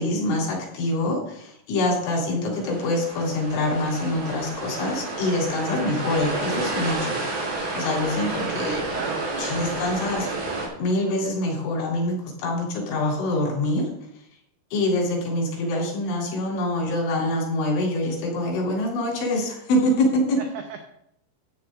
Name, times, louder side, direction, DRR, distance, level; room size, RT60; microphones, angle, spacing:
voice 1, 0.0-7.4 7.7-8.9 9.4-13.9 14.7-20.4, left 1 dB, 85° left, -2 dB, 5.8 m, -25 dB
sound 1, 2.5-10.7, right 3 dB, 55° right, 6.0 m, -30 dB
voice 2, 8.1-9.2 20.4-20.8, right 6 dB, 75° right, 5 dB, 2.5 m, -36 dB
13.5 x 9.2 x 3.7 m, 0.75 s
omnidirectional pair, 5.3 m